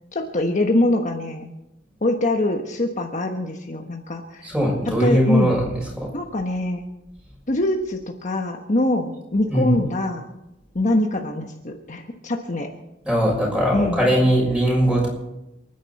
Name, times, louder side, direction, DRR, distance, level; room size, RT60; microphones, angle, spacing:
voice 1, 0.1-1.5 2.0-4.5 4.8-5.6 6.1-6.8 7.5-10.3 10.7-12.7 13.7-14.0, left 1 dB, 40° left, 3 dB, 1.3 m, -23 dB
voice 2, 4.4-5.6 6.0-6.1 9.5-9.8 13.0-15.1, right 1 dB, 5° right, -2 dB, 6.6 m, -20 dB
29.0 x 10.0 x 4.2 m, 0.93 s
head